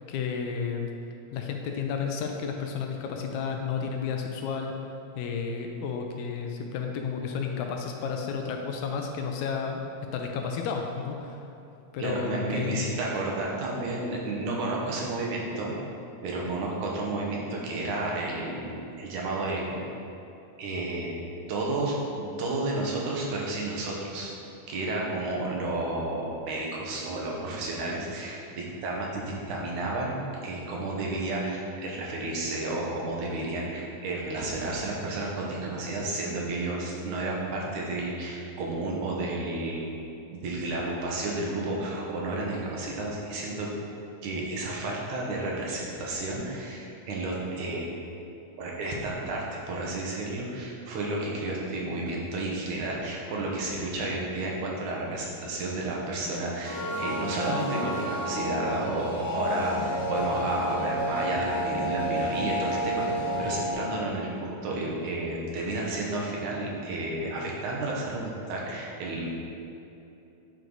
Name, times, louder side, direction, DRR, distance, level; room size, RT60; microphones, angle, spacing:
voice 1, 0.1-0.9 1.3-4.7 5.2-9.8 10.1-11.4 11.9-13.0, left 6 dB, 80° left, 2 dB, 1.9 m, -32 dB
voice 2, 12.0-15.7 16.2-19.8 20.6-21.1 21.5-24.3 24.7-39.8 40.3-43.7 44.2-47.9 48.6-69.3, right 2 dB, 75° right, -3 dB, 2.6 m, -31 dB
sound 1, 56.6-63.7, equal, 40° left, 1.6 m, -30 dB
9.0 x 4.6 x 3.9 m, 2.8 s
omnidirectional pair, 3.6 m